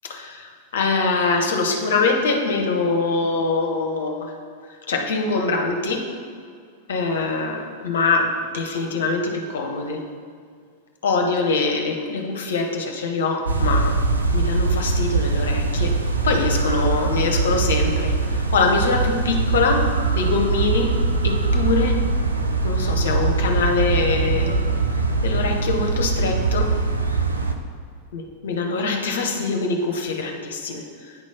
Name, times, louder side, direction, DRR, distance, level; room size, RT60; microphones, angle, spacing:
voice 1, 0.0-4.3 4.9-6.1 6.9-10.0 11.0-14.0 14.3-20.9 21.2-22.0 22.6-24.6 25.2-26.7 28.1-31.1, left 3 dB, 60° left, 3 dB, 0.9 m, -23 dB
sound 1, 13.5-27.5, right 3 dB, 80° right, 0.5 m, -22 dB
9.2 x 3.1 x 5.5 m, 2.1 s
figure-of-eight pair, 90°, 0 cm